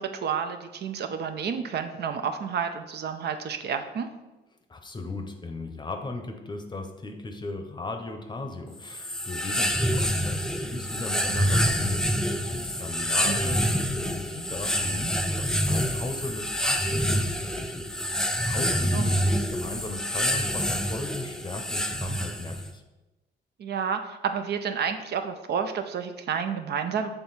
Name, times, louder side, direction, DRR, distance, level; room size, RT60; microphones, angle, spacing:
voice 1, 0.0-4.1 13.2-13.4 18.9-19.1 23.6-27.1, right 7 dB, 55° right, 7 dB, 0.5 m, -30 dB
voice 2, 4.7-12.1 12.5-22.8, left 2 dB, 25° left, 5 dB, 0.7 m, -37 dB
sound 1, 8.8-22.7, equal, 5° left, 0.4 m, -27 dB
6.8 x 3.4 x 4.1 m, 1.1 s
cardioid pair, 90°, 20 cm